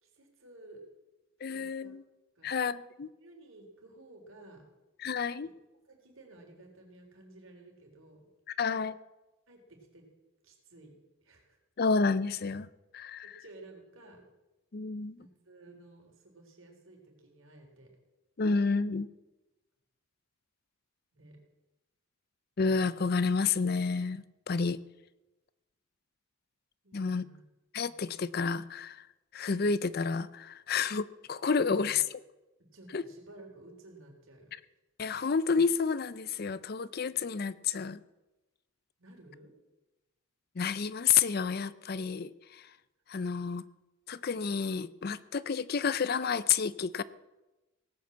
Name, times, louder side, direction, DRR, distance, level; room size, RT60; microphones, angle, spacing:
voice 1, 0.0-0.8 1.5-2.0 2.4-2.5 3.2-4.7 5.4-5.5 5.9-8.2 9.5-10.1 10.4-10.9 11.2-11.6 13.2-14.2 15.1-17.9 21.1-21.4 26.8-27.4 31.7-31.9 32.7-34.5 39.0-39.5 43.3-43.6, right 2 dB, 70° right, 2 dB, 3.8 m, -54 dB
voice 2, 1.4-2.0 2.4-3.1 5.0-5.5 8.6-8.9 11.8-12.7 12.9-13.3 14.7-15.2 18.4-19.1 22.6-24.8 26.9-27.2 27.7-29.1 29.3-32.0 32.9-33.0 35.0-38.0 40.6-42.7 43.1-43.6 44.1-47.0, left 5 dB, 45° left, 17 dB, 0.5 m, -30 dB
18.0 x 8.6 x 7.4 m, 1.0 s
head